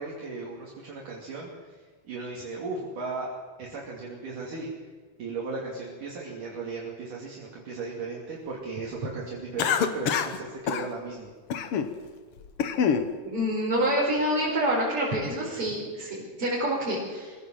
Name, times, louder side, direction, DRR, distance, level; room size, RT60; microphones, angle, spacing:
voice 1, 0.0-4.9 5.2-11.3, right 3 dB, 55° right, -2 dB, 4.0 m, -36 dB
Cough, 9.6-10.4 10.7-10.9 11.5-11.9 12.4-13.1, left 7 dB, 80° left, 1.3 m, -25 dB
voice 2, 13.2-17.5, equal, 35° right, -5 dB, 5.3 m, -27 dB
24.0 x 17.0 x 7.6 m, 1.5 s
omnidirectional pair, 4.6 m